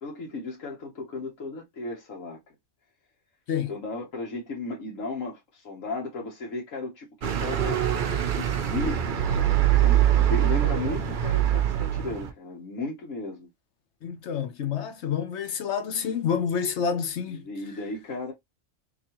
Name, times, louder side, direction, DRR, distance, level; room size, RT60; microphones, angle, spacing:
voice 1, 0.0-2.4 3.7-7.8 8.2-13.5 17.3-18.3, left 2 dB, 90° left, 1.4 m, -35 dB
sound 1, 7.2-12.3, right 11 dB, 55° right, 0.6 m, -23 dB
voice 2, 14.0-17.4, left 7 dB, 65° left, 1.0 m, -28 dB
4.0 x 2.9 x 2.9 m
omnidirectional pair, 1.3 m